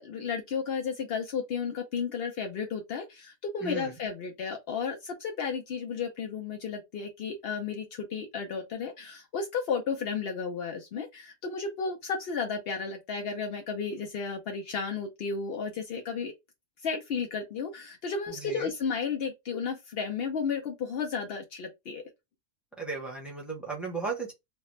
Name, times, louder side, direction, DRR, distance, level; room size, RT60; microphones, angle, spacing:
voice 1, 0.0-16.3 16.8-22.0, left 5 dB, 70° left, 0.5 m, -33 dB
voice 2, 3.6-3.9 18.3-18.7 22.8-24.3, right 4 dB, ahead, 0.6 m, -35 dB
3.2 x 2.1 x 3.0 m
omnidirectional pair, 1.6 m